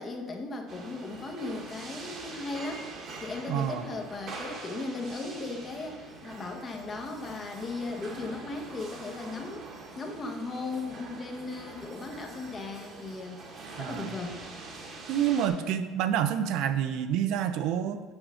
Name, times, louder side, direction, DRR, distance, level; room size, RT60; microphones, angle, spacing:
voice 1, 0.0-2.9 3.2-9.7 10.0-13.4 13.8-14.4, left 3 dB, 25° left, 3 dB, 1.0 m, -37 dB
sound 1, 0.7-15.5, right 3 dB, 40° right, 1.3 m, -44 dB
voice 2, 3.5-3.8 13.8-14.1 15.1-18.0, right 9 dB, 65° right, 9 dB, 0.5 m, -28 dB
6.2 x 4.8 x 6.3 m, 1.3 s
cardioid pair, 140°, 0 cm